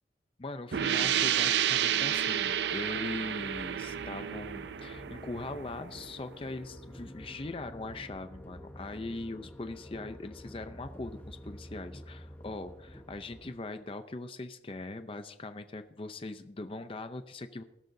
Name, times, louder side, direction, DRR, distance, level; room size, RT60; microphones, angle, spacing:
voice 1, 0.4-17.6, left 2 dB, 30° left, 9 dB, 0.6 m, -41 dB
sound 1, 0.7-6.2, right 10 dB, 75° right, 0.5 m, -30 dB
sound 2, 1.9-13.5, equal, 10° left, 1.1 m, -49 dB
19.5 x 13.0 x 2.7 m, 0.91 s
head